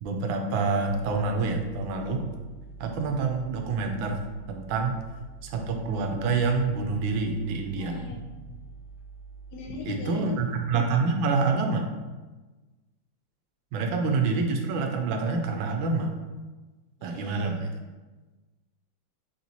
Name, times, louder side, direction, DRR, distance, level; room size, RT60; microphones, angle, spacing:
voice 1, 0.0-2.2 2.8-4.2 4.5-5.0 5.4-7.9 9.9-11.9 13.7-16.1 17.0-17.7, right 4 dB, 85° right, 4 dB, 1.4 m, -27 dB
sound 1, 0.8-9.8, right 5 dB, 40° right, 0.9 m, -46 dB
voice 2, 7.7-8.5 9.5-10.4 17.0-17.5, left 3 dB, 60° left, 0 dB, 1.2 m, -39 dB
4.2 x 3.0 x 4.0 m, 1.2 s
omnidirectional pair, 2.1 m